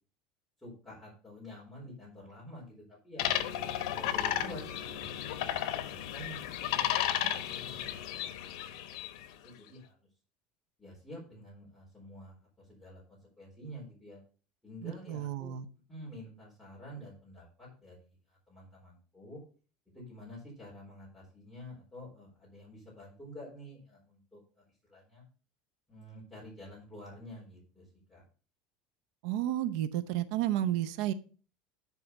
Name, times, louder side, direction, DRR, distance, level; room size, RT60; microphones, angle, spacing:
voice 1, 0.6-3.2 3.8-7.0 7.2-8.2 8.6-8.8 9.2-10.0 10.8-14.2 14.6-15.5 15.9-19.4 19.9-25.2 25.9-28.2, left 1 dB, 5° left, 4.0 m, -49 dB
sound 1, 3.2-9.3, left 11 dB, 85° left, 0.9 m, -33 dB
voice 2, 14.8-15.7 29.2-31.1, right 12 dB, 75° right, 0.7 m, -32 dB
11.0 x 4.7 x 5.2 m
cardioid pair, 155°, 3 cm